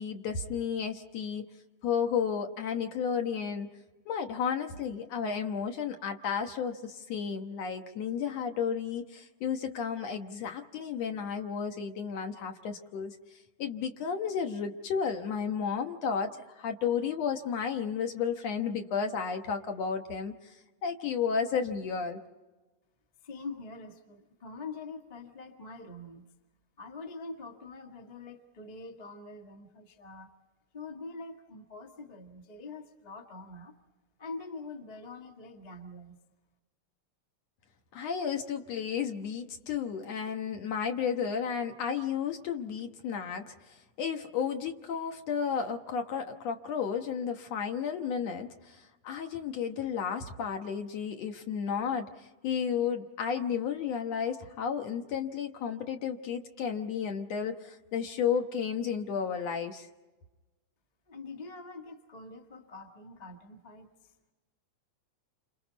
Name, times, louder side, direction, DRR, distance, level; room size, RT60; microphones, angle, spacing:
voice 1, 0.0-1.4 1.8-3.7 4.1-13.2 13.6-20.5 20.8-22.2 37.9-59.9, left 7 dB, 65° left, 5 dB, 2.2 m, -33 dB
voice 2, 23.2-26.2 26.8-30.3 30.7-33.8 34.2-36.2 61.1-64.1, left 3 dB, 20° left, 3 dB, 1.1 m, -44 dB
29.5 x 27.0 x 4.1 m, 1.2 s
omnidirectional pair, 3.4 m